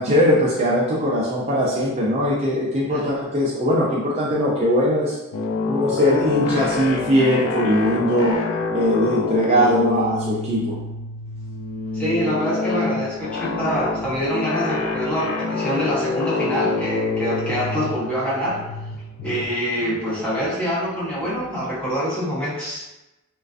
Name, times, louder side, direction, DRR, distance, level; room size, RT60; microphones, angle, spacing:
voice 1, 0.0-5.2 5.7-8.4 8.7-10.8, equal, 30° right, -5 dB, 0.3 m, -20 dB
sound 1, 5.3-21.8, left 3 dB, 75° left, 0.3 m, -27 dB
voice 2, 11.9-18.6 19.2-22.8, equal, 5° left, -8 dB, 0.7 m, -25 dB
2.3 x 2.3 x 2.4 m, 0.99 s
head